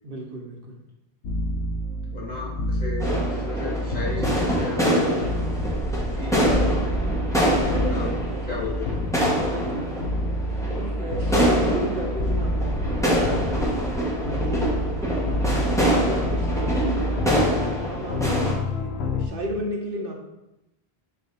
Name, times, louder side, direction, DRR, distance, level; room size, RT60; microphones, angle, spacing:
voice 1, 0.0-0.8 7.7-8.6 9.2-10.1 10.7-13.5 14.2-17.1 17.9-20.1, right 1 dB, 60° right, 0 dB, 1.1 m, -34 dB
sound 1, 1.2-19.3, left 1 dB, 85° left, 0.9 m, -28 dB
voice 2, 2.1-3.1 3.4-5.2 6.1-6.8 7.9-8.1 8.4-8.9, left 3 dB, 40° left, -6 dB, 2.1 m, -34 dB
sound 2, 3.0-18.5, equal, 5° left, 1.1 m, -25 dB
4.6 x 4.0 x 5.3 m, 0.93 s
omnidirectional pair, 1.1 m